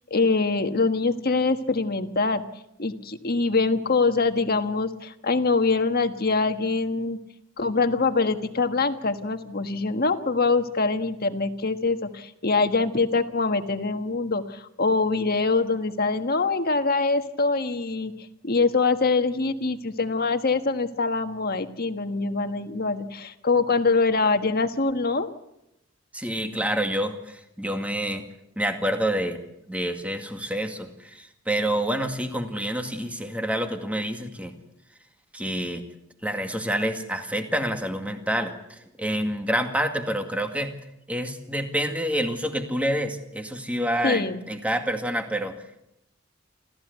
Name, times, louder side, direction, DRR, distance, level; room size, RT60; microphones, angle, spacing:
voice 1, 0.1-2.4 2.8-7.2 7.6-18.1 18.4-25.3 44.0-44.4, left 3 dB, 50° left, 8 dB, 1.5 m, -24 dB
voice 2, 26.1-28.2 28.6-29.4 29.7-34.5 35.3-35.8 36.2-40.7 41.1-45.6, right 1 dB, 5° right, 5 dB, 2.1 m, -28 dB
28.0 x 14.5 x 8.2 m, 0.84 s
head